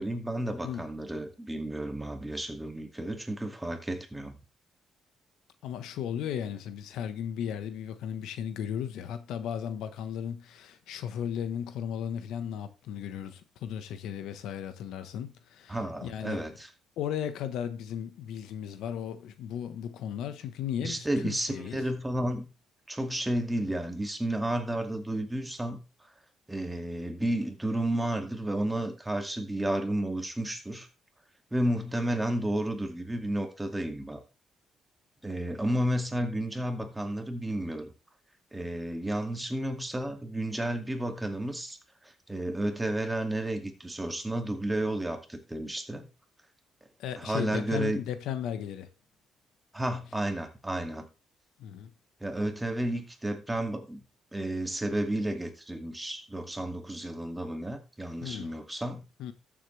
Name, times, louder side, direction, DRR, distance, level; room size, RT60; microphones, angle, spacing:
voice 1, 0.0-4.4 15.7-16.7 20.8-22.5 22.9-25.8 26.5-30.9 31.5-34.2 35.2-37.9 38.5-41.8 42.3-46.1 47.2-48.0 49.7-51.0 52.2-54.0 54.3-59.0, right 1 dB, 10° right, 2.3 m, -32 dB
voice 2, 5.6-16.4 17.0-21.8 47.0-48.9 51.6-51.9 58.2-58.6 59.2-59.3, left 9 dB, 85° left, 1.2 m, -35 dB
13.5 x 7.6 x 3.3 m
cardioid pair, 90°, 0 cm